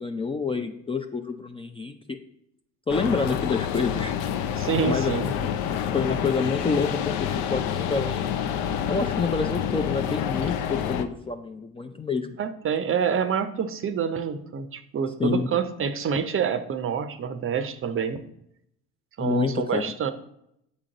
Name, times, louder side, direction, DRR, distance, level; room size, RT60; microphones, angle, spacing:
voice 1, 0.0-2.2 2.9-4.1 4.8-5.4 5.9-8.5 8.9-12.4 15.2-15.5 19.2-19.9, left 4 dB, 15° left, 6 dB, 0.3 m, -28 dB
sound 1, 2.9-11.0, left 9 dB, 75° left, 0.6 m, -28 dB
voice 2, 4.6-5.3 12.4-18.2 19.2-20.1, right 7 dB, 35° right, 11 dB, 0.6 m, -27 dB
7.3 x 3.8 x 3.9 m, 0.78 s
supercardioid pair, 70°, 36 cm